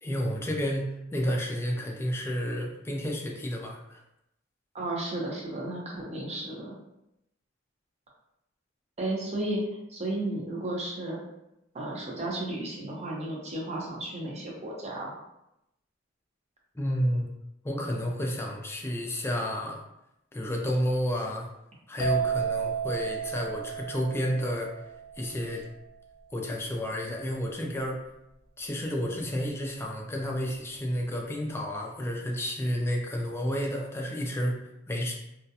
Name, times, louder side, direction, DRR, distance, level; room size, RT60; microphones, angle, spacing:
voice 1, 0.0-4.0 16.8-17.3 17.6-19.8 20.3-21.5 21.9-24.7 25.2-25.6 26.3-28.0 28.6-34.5 34.9-35.1, equal, 15° left, -1 dB, 0.4 m, -31 dB
voice 2, 4.7-6.7 9.0-9.6 9.9-11.2 11.7-15.1, right 1 dB, 35° right, -3 dB, 0.6 m, -33 dB
sound 1, 22.0-25.6, right 7 dB, 85° left, 0.5 m, -32 dB
2.3 x 2.1 x 2.7 m, 0.85 s
head